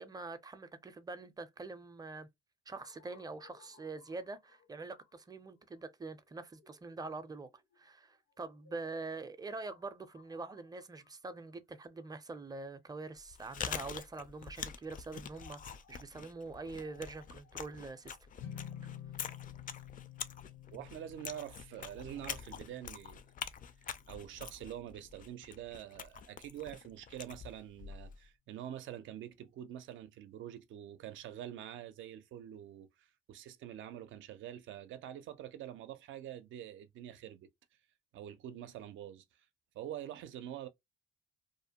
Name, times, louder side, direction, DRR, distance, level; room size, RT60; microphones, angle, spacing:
voice 1, 0.0-2.3 2.7-7.5 7.8-18.2, right 3 dB, 20° right, 0.5 m, -45 dB
sound 1, 2.7-12.5 13.3-20.2, left 6 dB, 90° left, 1.5 m, -67 dB
Chewing mastication, 13.2-28.3, left 7 dB, 45° left, 0.4 m, -46 dB
sound 2, 18.4-24.8, left 10 dB, 75° left, 0.7 m, -51 dB
voice 2, 20.7-23.2 24.1-37.5 38.1-39.2 39.7-40.7, right 11 dB, 75° right, 0.5 m, -46 dB
2.6 x 2.1 x 2.8 m
cardioid pair, 90°, 20 cm